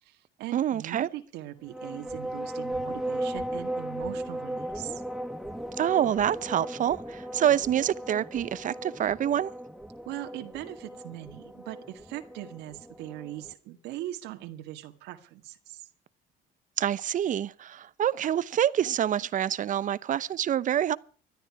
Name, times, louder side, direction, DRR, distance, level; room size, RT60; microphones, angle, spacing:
voice 1, 0.0-5.0 10.1-15.9, right 14 dB, 90° right, 2.0 m, -40 dB
voice 2, 0.5-1.1 5.8-9.5 16.8-21.0, right 10 dB, 50° right, 0.9 m, -26 dB
sound 1, 1.6-13.5, right 1 dB, ahead, 1.5 m, -37 dB
20.5 x 12.5 x 4.8 m
cardioid pair, 110°, 17 cm